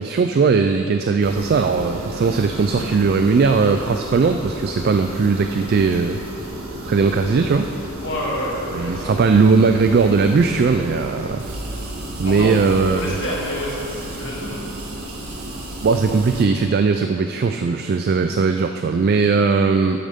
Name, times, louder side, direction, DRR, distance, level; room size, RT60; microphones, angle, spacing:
voice 1, 0.0-6.2 6.8-7.7 8.7-11.4 12.2-13.1 15.8-20.0, right 4 dB, 45° right, 6 dB, 0.3 m, -18 dB
sound 1, 1.2-16.5, right 1 dB, 80° right, 1.6 m, -32 dB
voice 2, 2.4-3.0 8.0-9.1 11.2-11.3 12.2-12.6 12.9-14.6, equal, 60° left, -6 dB, 2.4 m, -28 dB
12.0 x 8.7 x 3.6 m, 2.6 s
head